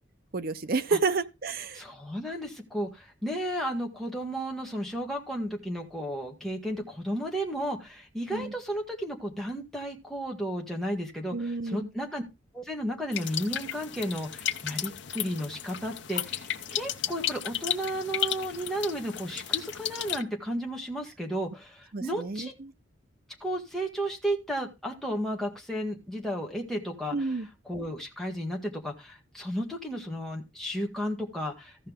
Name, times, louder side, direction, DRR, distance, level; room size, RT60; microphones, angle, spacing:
voice 1, 0.3-1.8 8.3-8.5 11.3-11.9 21.9-22.7 27.1-27.5, right 4 dB, 50° right, 0.7 m, -30 dB
voice 2, 1.7-12.2 12.5-22.5 23.4-27.4 27.6-31.8, equal, ahead, 1.7 m, -33 dB
sound 1, 13.1-20.2, left 11 dB, 65° left, 0.7 m, -34 dB
15.0 x 5.5 x 3.6 m
head